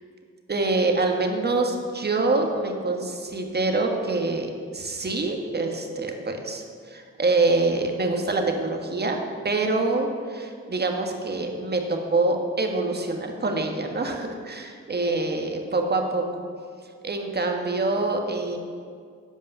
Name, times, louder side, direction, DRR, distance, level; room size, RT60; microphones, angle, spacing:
voice 1, 0.5-9.2 9.4-16.2 17.0-18.6, right 3 dB, 35° right, 3 dB, 1.6 m, -25 dB
11.5 x 5.3 x 8.2 m, 2.1 s
cardioid pair, 65°, 29 cm